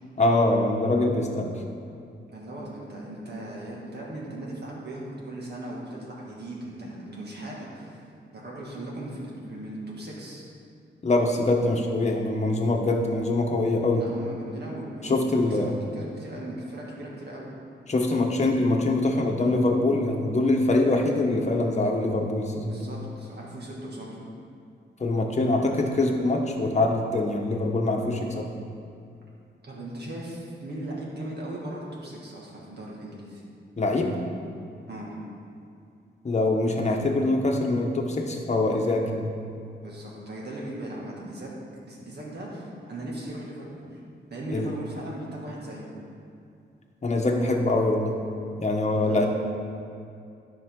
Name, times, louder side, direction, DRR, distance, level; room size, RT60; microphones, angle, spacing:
voice 1, 0.2-1.6 11.0-14.1 15.0-15.7 17.9-22.9 25.0-28.5 33.8-34.2 36.2-39.3 44.5-44.7 47.0-48.2 48.6-49.3, left 2 dB, 35° left, 1 dB, 1.1 m, -24 dB
voice 2, 2.3-8.0 8.3-10.4 14.0-17.5 22.6-24.2 29.6-33.4 34.9-35.2 39.8-41.5 41.9-44.0 44.3-45.9 49.0-49.3, right 1 dB, 60° right, -4 dB, 2.1 m, -38 dB
12.5 x 5.5 x 3.8 m, 2.5 s
wide cardioid pair, 105°, 20 cm